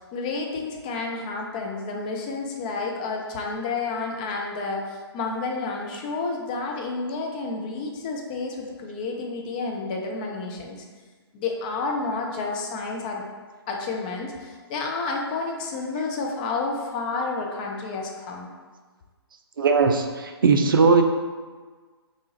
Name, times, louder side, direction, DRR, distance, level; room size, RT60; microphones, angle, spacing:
voice 1, 0.1-10.8 11.3-13.2 13.7-18.5, left 3 dB, 20° left, 0 dB, 0.3 m, -30 dB
voice 2, 19.6-21.0, right 4 dB, 55° right, 5 dB, 0.4 m, -19 dB
3.5 x 2.9 x 2.8 m, 1.4 s
figure-of-eight pair, 130°, 14 cm